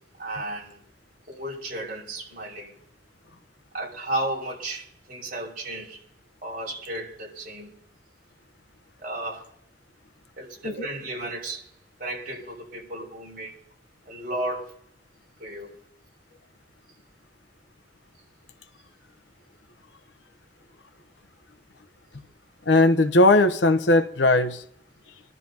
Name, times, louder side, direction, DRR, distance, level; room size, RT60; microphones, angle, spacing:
voice 1, 0.2-0.8 1.3-2.7 3.7-6.0 6.4-7.7 9.0-9.4 10.4-11.7 12.0-13.6 14.1-14.8 15.4-15.7, right 1 dB, 50° right, 5.8 m, -33 dB
voice 2, 22.7-24.6, left 2 dB, 90° left, 1.0 m, -18 dB
26.0 x 12.0 x 2.9 m
head